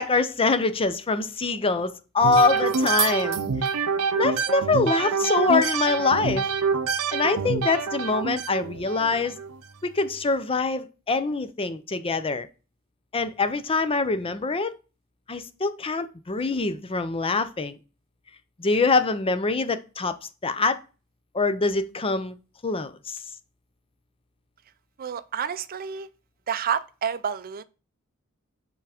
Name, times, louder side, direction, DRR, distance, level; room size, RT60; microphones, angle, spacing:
voice 1, 0.0-3.4 4.2-6.5 7.1-9.4 9.8-12.5 13.1-14.7 15.3-17.8 18.6-20.2 20.4-20.8 21.3-22.4 22.6-23.2, left 3 dB, 25° left, 0.6 m, -24 dB
sound 1, 2.2-9.5, right 5 dB, 85° right, 0.6 m, -26 dB
voice 2, 25.0-26.1 26.5-27.6, right 7 dB, 40° right, 0.5 m, -29 dB
5.8 x 4.6 x 4.9 m
head